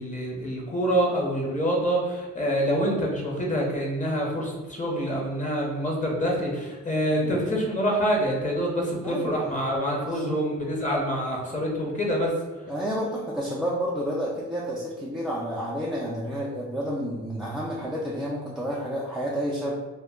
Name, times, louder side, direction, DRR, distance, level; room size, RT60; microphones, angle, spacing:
voice 1, 0.0-12.3, equal, 25° left, -2 dB, 0.7 m, -26 dB
voice 2, 9.0-9.6 10.1-10.4 12.7-19.7, equal, ahead, -5 dB, 0.3 m, -30 dB
2.2 x 2.1 x 3.5 m, 1.2 s
cardioid pair, 90°, 30 cm